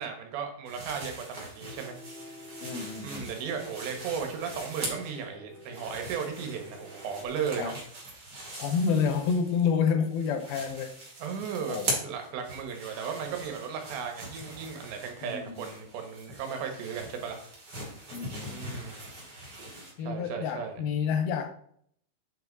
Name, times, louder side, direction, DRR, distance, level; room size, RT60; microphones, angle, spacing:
voice 1, 0.0-2.0 3.0-7.8 11.2-17.4 18.5-19.0 20.0-20.8, right 6 dB, 75° right, 3.4 m, -36 dB
sound 1, 0.6-5.2 5.5-9.7 10.0-19.9, right 1 dB, 35° right, 1.8 m, -41 dB
Piano, 1.6-7.3, equal, 55° left, 0.6 m, -49 dB
voice 2, 2.6-3.3 7.6-7.7 8.5-11.0 11.7-11.9 15.2-15.7 18.1-18.6 20.0-21.5, left 6 dB, 80° left, 2.2 m, -29 dB
8.7 x 5.7 x 4.0 m
omnidirectional pair, 5.3 m